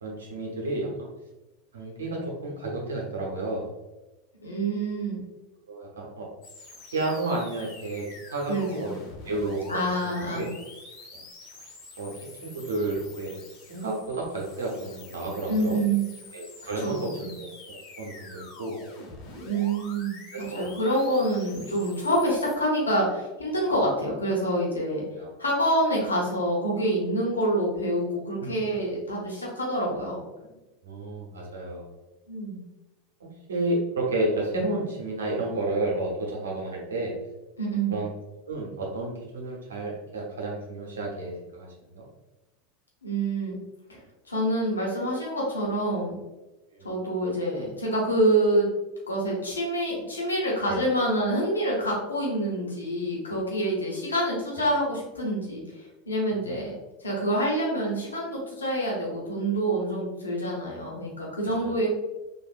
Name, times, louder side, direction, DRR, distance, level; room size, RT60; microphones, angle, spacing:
voice 1, 0.0-1.1 1.7-3.7 5.7-6.3 6.9-8.5 8.8-8.9 9.2-10.5 11.1-11.2 12.0-12.1 12.4-13.4 13.7-15.8 16.3-17.1 17.4-18.8 20.3-20.7 25.1-25.3 28.4-28.5 30.4-30.5 30.8-31.9 33.5-37.1 37.9-38.1 38.5-42.0 46.7-46.9 50.7-50.8 56.3-56.6 61.6-61.7, right 2 dB, 80° right, -2 dB, 0.8 m, -31 dB
voice 2, 4.4-5.2 8.5-8.9 9.7-10.5 15.5-16.1 16.8-17.3 19.4-25.0 25.4-30.2 32.3-32.6 37.6-38.0 43.0-43.6 44.3-46.2 46.8-48.7 49.1-56.7 57.0-61.9, right 1 dB, 85° left, -3 dB, 0.9 m, -27 dB
sound 1, 6.4-22.6, left 3 dB, 45° left, 0.9 m, -46 dB
3.4 x 2.5 x 2.4 m, 1.1 s
figure-of-eight pair, 85°, 0 cm